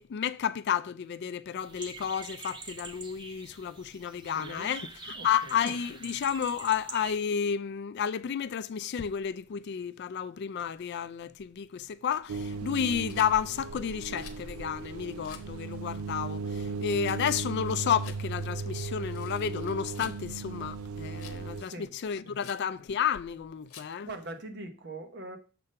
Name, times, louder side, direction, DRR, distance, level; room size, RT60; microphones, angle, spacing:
voice 1, 0.0-24.1, left 8 dB, 50° left, 0.3 m, -31 dB
sound 1, 1.6-7.2, right 3 dB, 20° right, 0.6 m, -45 dB
voice 2, 4.3-4.7 5.1-5.6 21.6-21.9 22.2-22.4 24.0-25.4, right 2 dB, 50° right, 1.0 m, -42 dB
sound 2, 12.3-21.6, right 4 dB, 75° right, 0.5 m, -37 dB
Rattle, 13.0-13.3 14.1-14.5 15.2-15.5 16.9-17.2 18.0-18.2 19.0-20.2 21.2-21.5 22.4-22.7 23.7-24.0, left 9 dB, 80° left, 0.8 m, -49 dB
6.8 x 3.6 x 5.3 m
head